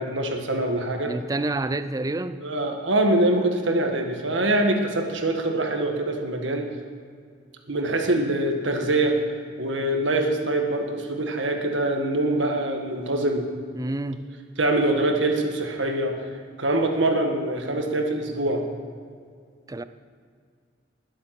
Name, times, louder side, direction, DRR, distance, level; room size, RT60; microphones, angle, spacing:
voice 1, 0.0-1.1 2.4-6.7 7.7-9.2 9.6-13.5 14.6-16.2 16.6-18.6, right 1 dB, 80° right, 1.7 m, -24 dB
voice 2, 0.9-2.4 13.7-14.3 19.7-19.8, right 2 dB, 20° right, 0.5 m, -28 dB
20.5 x 7.8 x 5.9 m
head